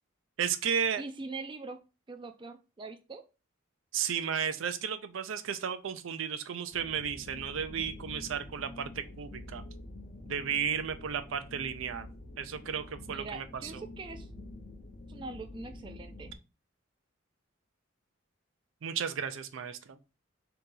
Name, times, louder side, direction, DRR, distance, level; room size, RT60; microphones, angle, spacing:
voice 1, 0.4-1.0 3.9-9.6 10.2-12.1 12.4-13.8 18.8-20.0, right 7 dB, 85° right, 10 dB, 0.4 m, -34 dB
voice 2, 1.0-1.8 2.1-3.2 13.1-14.3 15.1-16.4, right 3 dB, 25° right, 5 dB, 0.4 m, -43 dB
sound 1, 6.7-16.3, left 2 dB, 40° left, 0.6 m, -47 dB
3.8 x 2.9 x 3.6 m, 0.31 s
head